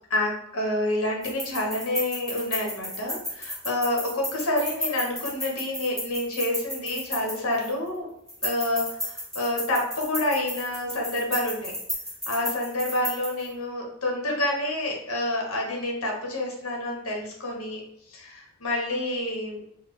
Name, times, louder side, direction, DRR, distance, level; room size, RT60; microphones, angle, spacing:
voice 1, 0.1-8.1 8.4-11.8 12.3-17.8 18.1-19.8, left 1 dB, 65° left, 0 dB, 1.3 m, -28 dB
sound 1, 1.2-7.9 8.3-13.5, left 1 dB, ahead, 1.2 m, -33 dB
4.2 x 2.3 x 4.6 m, 0.76 s
head